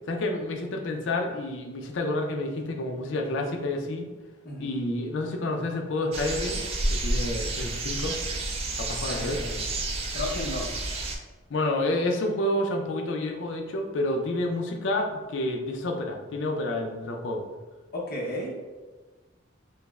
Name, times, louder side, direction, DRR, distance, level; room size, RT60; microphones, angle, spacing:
voice 1, 0.1-4.1 4.6-6.6 6.9-8.2 8.8-9.4 11.5-17.4, left 1 dB, 65° left, 3 dB, 0.4 m, -29 dB
sound 1, 6.1-11.2, right 2 dB, 30° right, 0.3 m, -30 dB
voice 2, 9.1-9.6 10.1-10.7 17.9-18.5, left 1 dB, 50° left, -4 dB, 0.8 m, -33 dB
5.2 x 2.0 x 2.3 m, 1.3 s
head